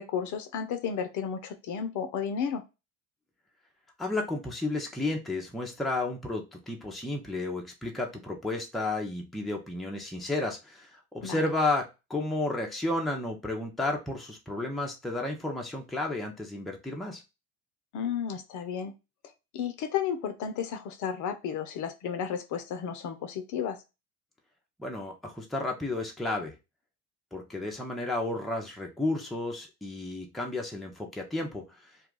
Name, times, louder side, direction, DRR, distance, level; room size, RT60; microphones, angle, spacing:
voice 1, 0.0-2.6 11.2-11.4 17.9-18.9 19.5-23.8, left 7 dB, 45° left, 7 dB, 0.6 m, -33 dB
voice 2, 4.0-17.2 24.8-26.5 27.3-31.7, left 2 dB, ahead, 0 dB, 0.6 m, -32 dB
2.3 x 2.3 x 3.7 m, 0.26 s
hypercardioid pair, 70°, 43 cm